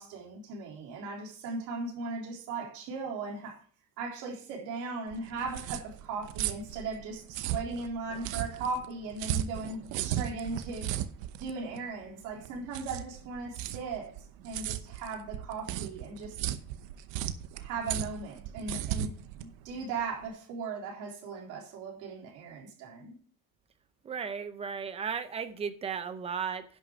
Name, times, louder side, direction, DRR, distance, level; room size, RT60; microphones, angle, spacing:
voice 1, 0.0-3.6 4.0-11.0 11.4-14.2 14.4-16.4 17.5-23.1, right 3 dB, 60° right, 3.7 m, -38 dB
sound 1, 5.1-20.3, right 12 dB, 85° right, 0.9 m, -36 dB
voice 2, 24.0-26.6, right 6 dB, 20° right, 0.7 m, -35 dB
10.5 x 6.7 x 5.0 m
cardioid pair, 175°, 34 cm